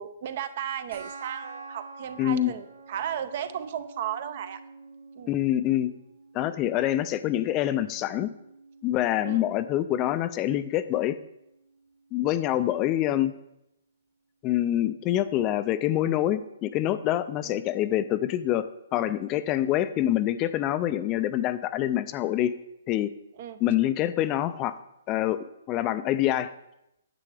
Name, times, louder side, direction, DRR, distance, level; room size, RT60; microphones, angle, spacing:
voice 1, 0.0-4.6 5.2-5.3 9.2-9.4 17.4-17.6 23.4-23.6, right 10 dB, 50° right, 12 dB, 0.6 m, -35 dB
sound 1, 0.9-11.9, right 3 dB, 70° right, 1.4 m, -48 dB
voice 2, 2.2-2.5 5.3-5.9 6.3-8.3 8.8-11.2 12.1-13.3 14.4-22.5 22.9-23.1 23.6-24.8 25.1-26.5, left 13 dB, 25° left, 13 dB, 0.3 m, -26 dB
9.8 x 7.5 x 3.3 m, 0.83 s
hypercardioid pair, 145°, 0 cm